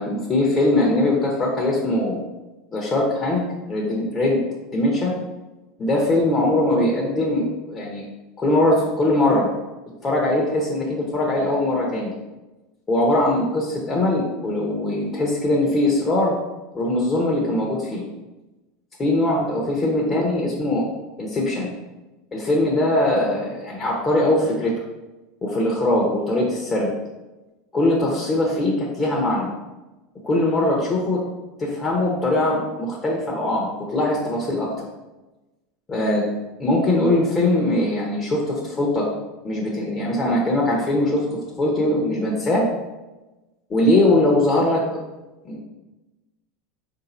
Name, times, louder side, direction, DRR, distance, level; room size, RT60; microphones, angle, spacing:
voice 1, 0.0-2.2 2.7-3.4 3.7-4.4 4.7-5.1 5.8-8.0 8.4-9.5 10.0-12.1 12.9-16.4 16.7-18.0 19.0-20.8 21.2-21.7 22.3-24.7 25.4-26.9 27.7-29.5 30.2-31.2 31.6-34.9 35.9-36.2 36.6-39.1 39.4-41.2 41.6-42.7 43.7-45.0 45.4-45.6, left 1 dB, 25° left, -2 dB, 1.0 m, -21 dB
3.4 x 2.7 x 4.3 m, 1.1 s
hypercardioid pair, 100°, 0 cm